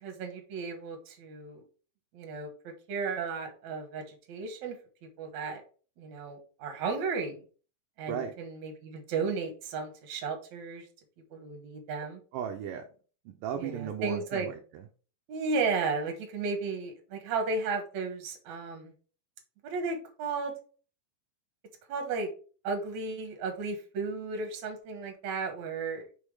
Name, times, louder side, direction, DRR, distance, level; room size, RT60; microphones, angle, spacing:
voice 1, 0.0-1.6 2.1-4.8 5.2-5.6 6.0-7.4 8.0-10.9 11.3-12.2 13.6-14.5 15.3-18.9 19.6-20.5 21.9-22.3 22.6-26.1, right 4 dB, 60° right, 4 dB, 2.2 m, -34 dB
voice 2, 12.3-12.8 13.3-14.8, right 8 dB, 75° right, 4 dB, 2.1 m, -36 dB
6.2 x 3.5 x 4.7 m, 0.38 s
omnidirectional pair, 4.2 m